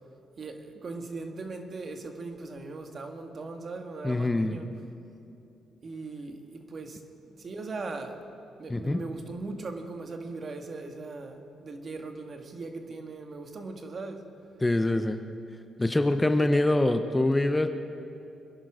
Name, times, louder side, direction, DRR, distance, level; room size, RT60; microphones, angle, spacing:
voice 1, 0.4-4.7 5.8-8.2 8.6-14.3, right 3 dB, 45° right, 5 dB, 1.8 m, -39 dB
voice 2, 4.0-4.6 8.7-9.0 14.6-15.2 15.8-17.7, left 2 dB, 15° left, 8 dB, 0.8 m, -24 dB
26.0 x 11.0 x 4.9 m, 2.7 s
cardioid pair, 90°, 0 cm